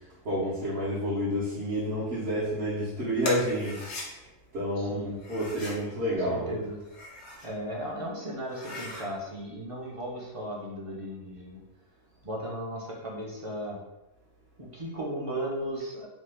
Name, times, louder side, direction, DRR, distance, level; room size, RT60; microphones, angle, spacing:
voice 1, 0.2-3.9 4.5-6.5, equal, 60° right, -10 dB, 1.1 m, -29 dB
sound 1, 3.2-4.1 5.2-5.8 6.7-7.5 7.9-8.0 8.4-9.1, left 2 dB, 85° left, 1.0 m, -38 dB
voice 2, 6.0-6.8 7.4-11.6 12.2-13.8 14.6-16.1, equal, 35° right, -4 dB, 0.6 m, -36 dB
3.0 x 2.2 x 3.3 m, 0.98 s
omnidirectional pair, 1.1 m